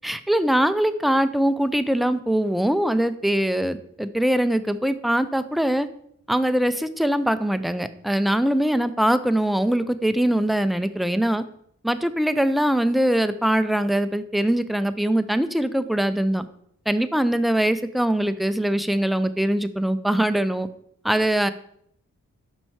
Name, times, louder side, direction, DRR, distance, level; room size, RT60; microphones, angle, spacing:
voice 1, 0.0-5.9 6.3-11.4 11.8-16.5 16.9-20.7 21.0-21.5, right 1 dB, ahead, 12 dB, 0.4 m, -22 dB
5.4 x 4.5 x 4.6 m, 0.69 s
cardioid pair, 40°, 35 cm